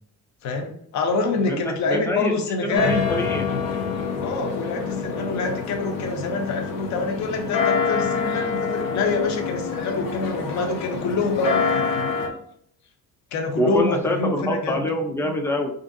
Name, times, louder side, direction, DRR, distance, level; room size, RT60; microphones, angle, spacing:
voice 1, 0.4-3.0 4.2-12.1 13.3-14.8, left 3 dB, 60° left, 4 dB, 0.6 m, -26 dB
voice 2, 1.5-3.5 13.6-15.7, left 1 dB, 10° left, 3 dB, 0.4 m, -25 dB
sound 1, 2.7-12.3, left 5 dB, 90° left, 0.8 m, -26 dB
4.3 x 2.6 x 2.5 m, 0.65 s
cardioid pair, 165°, 32 cm